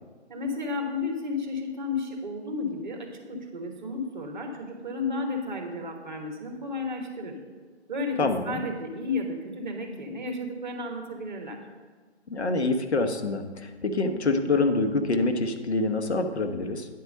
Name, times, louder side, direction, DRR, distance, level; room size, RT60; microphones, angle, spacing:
voice 1, 0.3-7.4 7.9-11.6, left 3 dB, 40° right, 3 dB, 1.4 m, -33 dB
voice 2, 8.2-8.6 12.3-16.9, left 3 dB, 70° left, 6 dB, 1.0 m, -26 dB
9.8 x 4.7 x 6.5 m, 1.4 s
figure-of-eight pair, 155°, 34 cm